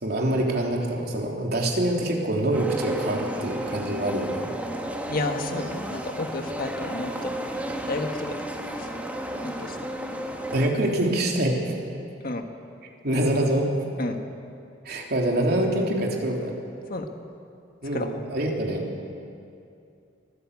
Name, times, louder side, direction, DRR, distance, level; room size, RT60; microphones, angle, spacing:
voice 1, 0.0-4.5 10.5-11.7 13.0-13.7 14.8-16.5 17.8-18.8, right 1 dB, 60° right, 0 dB, 3.4 m, -25 dB
sound 1, 2.5-10.7, right 1 dB, 10° right, 2.0 m, -33 dB
voice 2, 5.1-7.3 7.8-8.4 8.8-8.9 9.4-9.8 12.2-12.4 14.0-14.2 16.9-17.1 17.9-18.2, left 2 dB, 50° left, 5 dB, 1.6 m, -31 dB
24.0 x 16.0 x 8.4 m, 2.6 s
head